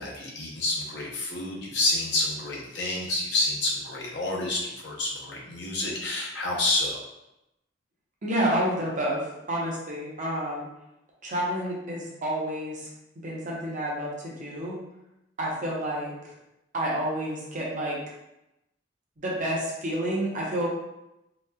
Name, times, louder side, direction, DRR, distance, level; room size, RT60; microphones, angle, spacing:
voice 1, 0.0-7.0, left 2 dB, 60° left, -3 dB, 0.7 m, -28 dB
voice 2, 8.2-10.7 11.2-12.9 13.2-14.8 15.4-16.1 16.7-18.0 19.2-20.7, right 1 dB, 40° right, -4 dB, 0.7 m, -29 dB
2.9 x 2.2 x 2.2 m, 0.89 s
head